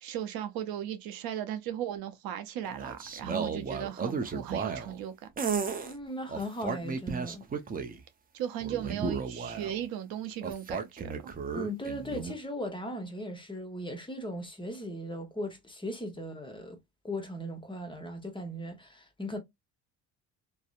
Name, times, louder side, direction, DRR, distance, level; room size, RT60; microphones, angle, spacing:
voice 1, 0.0-5.1 8.3-11.3, right 10 dB, 65° right, 0.6 m, -36 dB
sound 1, 2.6-5.0 5.4-5.9 6.3-8.0 8.6-9.8 10.4-12.3, right 5 dB, 25° right, 0.5 m, -34 dB
voice 2, 5.8-7.5 11.5-16.8 17.0-19.4, equal, 15° left, 0.8 m, -38 dB
2.6 x 2.0 x 2.4 m
supercardioid pair, 70°, 38 cm